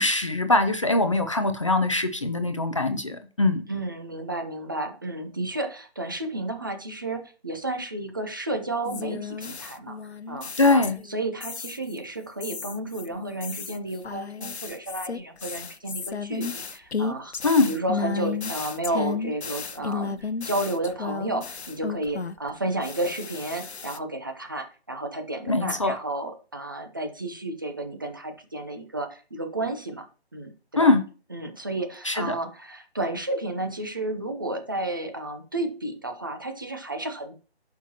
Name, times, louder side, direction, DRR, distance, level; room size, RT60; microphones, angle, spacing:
voice 1, 0.0-3.6 10.6-11.0 17.4-17.7 25.5-25.9 30.8-31.0 32.0-32.4, left 2 dB, 30° left, 8 dB, 0.6 m, -22 dB
voice 2, 3.7-10.0 10.3-17.4 17.7-30.1 30.3-30.9 31.3-37.3, right 2 dB, 20° right, 5 dB, 0.7 m, -32 dB
sound 1, 8.8-11.1 11.4-12.0 12.4-22.5 22.8-24.0, left 5 dB, 80° left, 0.8 m, -33 dB
11.0 x 5.9 x 2.9 m, 0.36 s
figure-of-eight pair, 160°, 32 cm